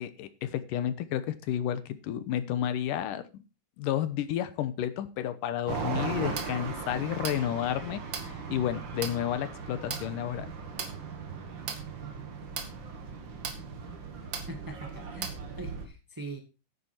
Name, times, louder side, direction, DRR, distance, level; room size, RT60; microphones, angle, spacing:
voice 1, 0.0-3.4 3.8-10.5, left 11 dB, 80° left, 12 dB, 2.6 m, -31 dB
sound 1, 5.7-15.9, right 5 dB, 45° right, 1.7 m, -37 dB
voice 2, 14.5-16.4, right 3 dB, 25° right, 4 dB, 0.4 m, -42 dB
10.0 x 9.6 x 4.5 m, 0.30 s
omnidirectional pair, 3.8 m